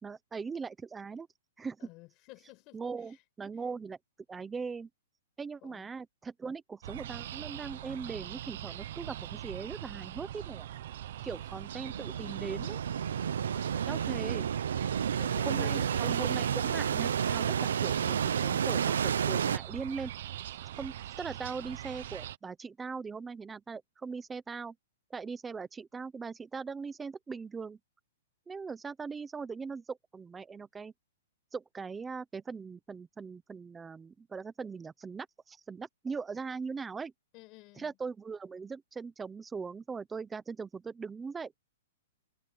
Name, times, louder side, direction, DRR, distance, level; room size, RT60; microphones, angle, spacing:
voice 1, 0.0-1.3 1.6-1.8 2.7-4.0 4.3-4.9 5.4-10.7 11.2-12.8 13.9-14.5 15.5-20.1 20.7-24.7 25.1-27.8 28.5-30.9 31.5-37.1 37.8-41.5, right 5 dB, 5° right, 0.8 m, -40 dB
voice 2, 1.8-3.2 5.6-5.9 11.2-11.5 13.5-14.1 14.9-15.9 37.3-38.0, left 23 dB, 25° left, 5.9 m, -51 dB
sound 1, 6.8-22.4, right 12 dB, 45° right, 0.9 m, -42 dB
sound 2, 11.3-19.6, right 8 dB, 85° right, 0.8 m, -31 dB
hypercardioid pair, 175°, 0 cm